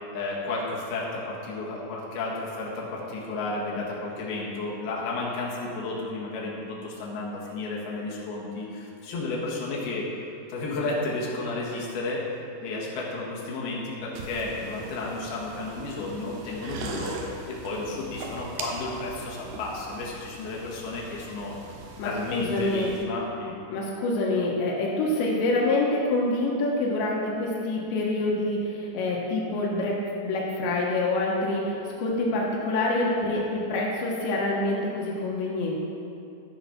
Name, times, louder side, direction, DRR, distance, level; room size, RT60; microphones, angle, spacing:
voice 1, 0.1-10.1 10.5-12.3 12.6-17.2 17.5-21.5 22.0-23.6, left 2 dB, 65° left, -4 dB, 3.5 m, -32 dB
sound 1, 14.1-23.0, right 3 dB, 75° right, 2.8 m, -41 dB
voice 2, 22.0-22.9 23.7-35.7, left 2 dB, 90° left, -3 dB, 3.6 m, -26 dB
12.5 x 7.1 x 5.9 m, 2.6 s
omnidirectional pair, 5.0 m